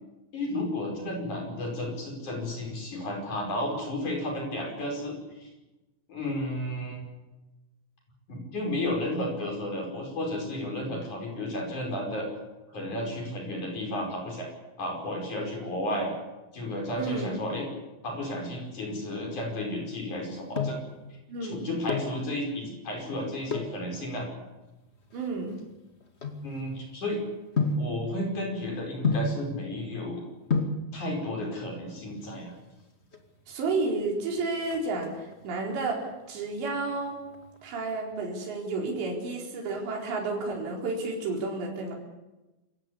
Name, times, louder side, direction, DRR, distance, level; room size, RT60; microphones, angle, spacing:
voice 1, 0.3-5.5 6.1-7.0 8.3-12.3 12.7-14.5 14.8-16.1 16.5-17.7 18.0-20.8 21.4-24.3 26.4-27.2 27.8-30.2 30.9-32.5, left 1 dB, 40° left, 1 dB, 6.5 m, -33 dB
voice 2, 17.0-17.4 21.3-21.7 25.1-25.5 33.5-37.2 37.6-42.0, right 3 dB, 70° right, 0 dB, 6.4 m, -31 dB
sound 1, 20.1-20.9 21.7-22.2 23.4-23.8 24.5-26.9 27.6-27.9 29.0-29.4 30.2-30.3 30.5-30.8 32.0-32.5 32.8-32.9 33.1-33.3 33.6-34.0 34.3-35.4 35.8-36.2 36.6-37.8 38.0-38.1, left 3 dB, 60° left, 0.6 m, -30 dB
27.5 x 16.5 x 8.5 m, 1.0 s
omnidirectional pair, 5.3 m